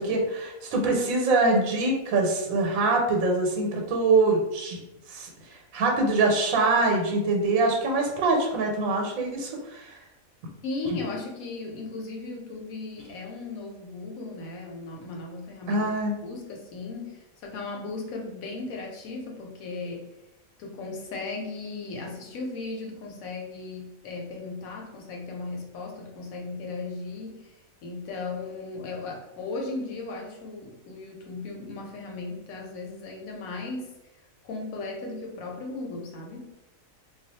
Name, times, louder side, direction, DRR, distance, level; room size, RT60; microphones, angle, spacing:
voice 1, 0.0-4.8 5.1-9.9 15.7-16.1, right 3 dB, 80° right, 1 dB, 1.1 m, -24 dB
voice 2, 10.6-15.8 16.2-20.1 20.6-27.5 27.8-33.9 34.4-36.5, left 3 dB, 85° left, 0 dB, 1.1 m, -36 dB
2.4 x 2.2 x 4.0 m, 0.93 s
omnidirectional pair, 1.4 m